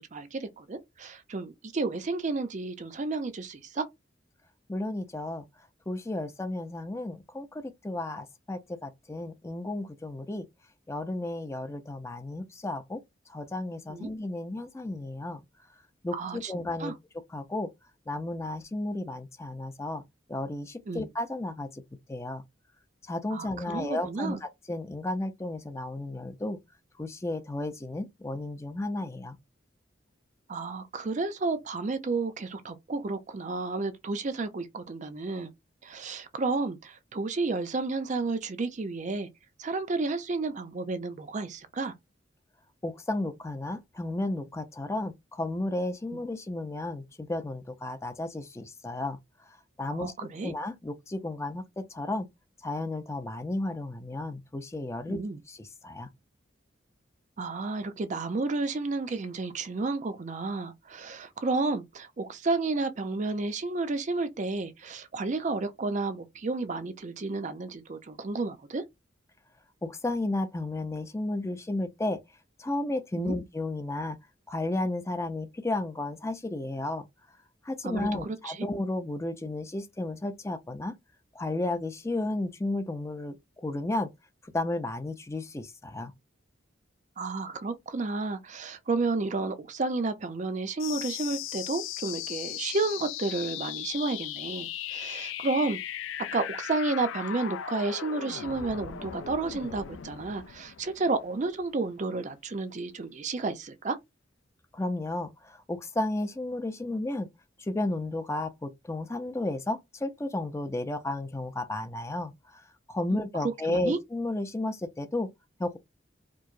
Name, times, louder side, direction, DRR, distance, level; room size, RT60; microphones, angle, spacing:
voice 1, 0.0-3.8 13.9-14.1 16.1-16.5 16.8-16.9 20.9-21.1 23.3-24.4 30.5-35.5 35.8-39.3 39.6-41.9 49.9-50.5 55.1-55.4 57.4-68.8 73.1-73.4 77.8-78.6 87.2-95.8 96.3-104.0 113.7-114.0, right 3 dB, 40° right, 0.5 m, -31 dB
voice 2, 4.7-5.4 5.9-10.5 10.9-13.0 13.3-15.4 16.0-16.9 17.3-17.7 18.1-20.0 20.3-21.8 22.1-22.4 23.0-26.6 27.0-29.4 42.8-49.2 49.8-50.1 50.4-52.3 52.6-55.2 55.5-56.1 69.8-72.2 72.6-74.2 74.5-77.1 77.6-80.9 81.3-84.1 84.4-86.1 104.7-107.3 107.6-115.3 115.6-115.8, left 2 dB, 15° left, 0.4 m, -33 dB
sound 1, 90.8-101.8, left 11 dB, 85° left, 0.4 m, -38 dB
4.5 x 2.0 x 2.5 m
head